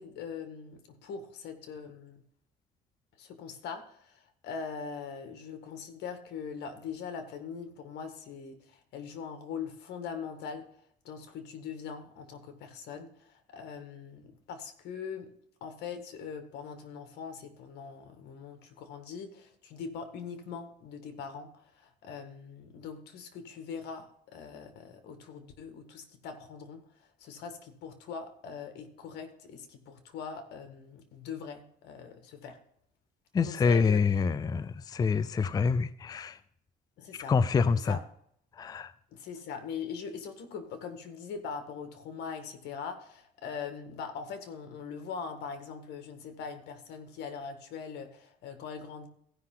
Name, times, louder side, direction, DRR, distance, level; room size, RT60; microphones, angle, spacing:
voice 1, 0.0-2.2 3.2-10.7 11.0-15.3 15.6-32.6 33.4-34.0 37.0-37.3 37.9-38.0 39.1-49.1, left 6 dB, 80° left, 8 dB, 1.8 m, -42 dB
voice 2, 33.3-36.4 37.3-38.0 38.6-38.9, left 5 dB, 25° left, 15 dB, 0.4 m, -26 dB
16.0 x 5.6 x 3.8 m, 0.68 s
cardioid pair, 110°, 17 cm